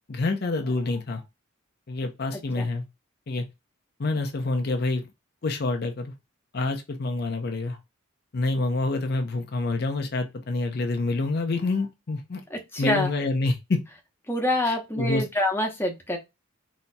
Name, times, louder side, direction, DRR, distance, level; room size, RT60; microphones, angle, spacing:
voice 1, 0.1-1.2 1.9-2.8 3.3-3.5 4.0-5.1 5.4-6.1 6.5-7.8 8.3-12.4 12.8-13.8 14.7-15.2, left 2 dB, 50° left, 0.6 m, -27 dB
voice 2, 2.3-2.7 12.5-13.1 14.3-16.2, left 1 dB, 10° left, 0.8 m, -26 dB
4.1 x 2.8 x 2.2 m
head